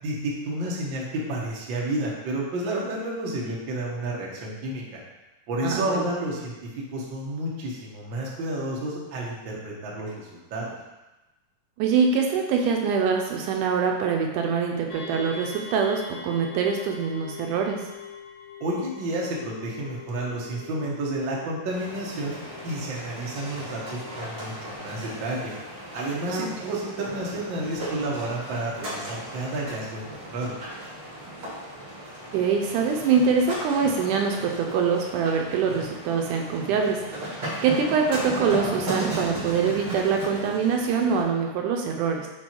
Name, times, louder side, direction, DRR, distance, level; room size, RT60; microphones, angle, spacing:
voice 1, 0.0-5.0 5.5-10.7 18.6-22.4 22.6-25.5 25.9-30.5, right 1 dB, 55° right, -4 dB, 1.3 m, -31 dB
voice 2, 5.6-6.1 11.8-17.9 26.3-26.7 32.3-42.3, right 6 dB, 80° right, 2 dB, 2.0 m, -24 dB
sound 1, 14.9-24.7, left 6 dB, 80° left, 2.8 m, -43 dB
sound 2, 21.7-41.2, right 1 dB, 35° right, 2.4 m, -36 dB
6.1 x 4.5 x 4.5 m, 1.1 s
omnidirectional pair, 3.8 m